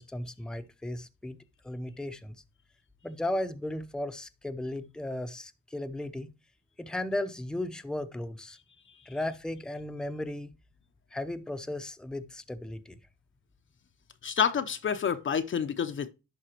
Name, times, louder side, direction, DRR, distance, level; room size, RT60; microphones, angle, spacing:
voice 1, 0.0-1.4 1.6-2.3 3.0-6.3 6.8-8.6 9.1-10.5 11.1-13.0, left 1 dB, ahead, 0.7 m, -35 dB
voice 2, 14.2-16.1, left 7 dB, 40° left, 0.7 m, -28 dB
11.5 x 3.9 x 2.9 m
cardioid pair, 90°, 30 cm